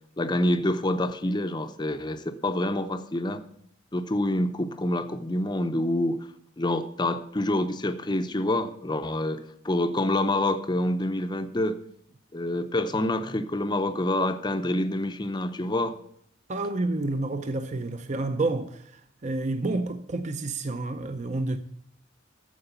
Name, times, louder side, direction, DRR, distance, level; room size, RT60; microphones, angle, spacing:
voice 1, 0.2-3.4 3.9-6.2 6.6-11.8 12.3-16.0, left 1 dB, 20° left, 0.6 m, -27 dB
voice 2, 16.5-21.6, right 2 dB, 35° right, 0.6 m, -29 dB
13.5 x 4.9 x 7.9 m
head